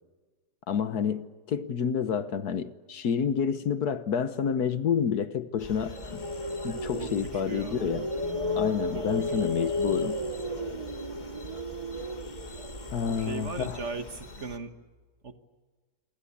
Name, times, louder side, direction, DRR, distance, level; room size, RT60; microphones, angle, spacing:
voice 1, 0.7-6.2 6.6-8.1 8.6-10.2 12.9-13.8, left 7 dB, 65° left, 1.6 m, -29 dB
sound 1, 5.6-14.6, left 3 dB, 30° left, 1.3 m, -44 dB
sound 2, 5.9-14.0, left 1 dB, 20° right, 1.1 m, -33 dB
voice 2, 7.0-7.8 8.9-9.5 13.1-14.7 15.2-15.3, right 4 dB, 45° right, 1.6 m, -38 dB
28.0 x 23.0 x 8.6 m
omnidirectional pair, 1.8 m